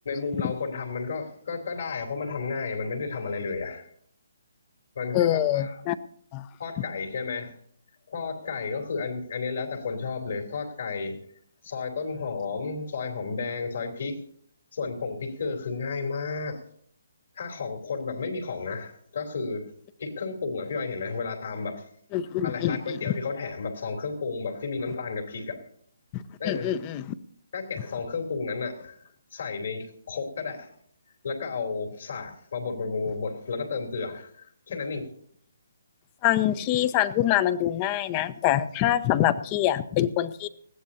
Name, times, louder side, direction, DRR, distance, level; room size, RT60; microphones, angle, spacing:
voice 1, 0.0-3.9 4.9-5.8 6.6-7.5 8.1-11.2 11.6-14.2 14.7-16.6 17.3-19.7 20.0-21.8 22.4-25.6 26.4-26.7 27.5-29.0 29.3-30.7 31.2-35.1, left 4 dB, 65° left, 2 dB, 3.3 m, -32 dB
voice 2, 5.1-6.0 6.3-6.5 22.1-23.0 26.1-27.0 36.2-40.5, left 12 dB, 25° left, 16 dB, 0.6 m, -25 dB
20.5 x 15.5 x 2.8 m, 0.63 s
hypercardioid pair, 155°, 0 cm